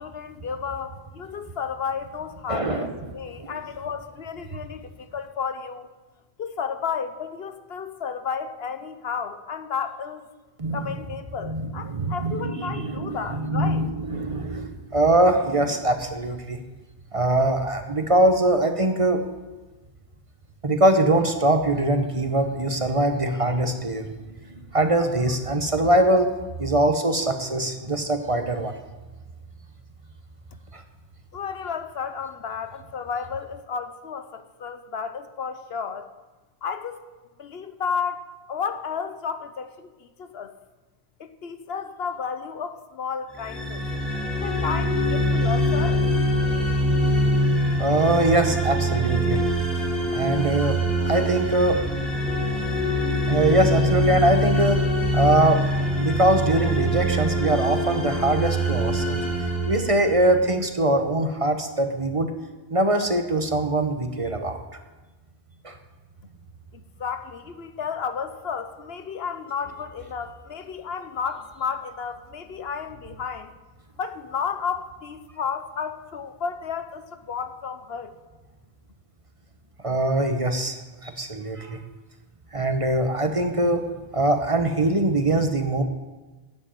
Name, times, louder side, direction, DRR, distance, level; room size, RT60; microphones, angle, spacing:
voice 1, 0.0-5.9 6.4-10.3 10.7-13.8 31.3-36.1 36.6-37.0 37.4-40.5 41.2-43.9 44.4-46.0 66.7-73.5 74.0-78.1, left 6 dB, 70° left, 10 dB, 1.1 m, -32 dB
voice 2, 2.5-3.0 3.4-3.6 10.6-10.8 11.4-16.6 17.1-19.2 20.6-24.1 24.7-26.3 26.6-28.8 30.7-30.8 47.8-49.4 50.1-51.8 53.3-54.8 55.1-55.6 56.0-59.2 59.7-62.3 62.7-64.6 65.6-65.7 79.8-80.8 81.0-81.8 82.5-83.8 84.1-85.8, right 1 dB, 35° right, 7 dB, 1.0 m, -22 dB
sound 1, 43.4-60.5, equal, ahead, 2.5 m, -24 dB
11.0 x 7.7 x 9.0 m, 1.2 s
omnidirectional pair, 1.1 m